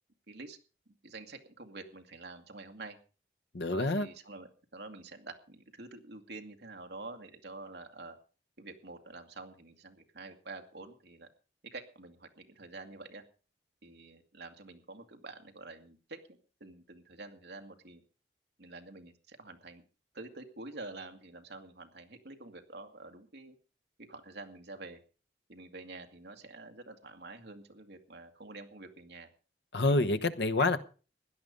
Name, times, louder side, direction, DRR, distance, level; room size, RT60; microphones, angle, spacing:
voice 1, 0.3-0.6 1.0-3.0 3.6-8.2 8.6-11.3 11.6-13.2 13.8-18.0 18.6-19.8 20.1-23.5 24.0-25.0 25.5-29.3 29.9-30.2 30.6-30.7, right 3 dB, 70° right, 2.0 m, -48 dB
voice 2, 3.5-4.1 29.7-30.8, left 2 dB, 75° left, 1.1 m, -27 dB
16.5 x 11.0 x 5.2 m
head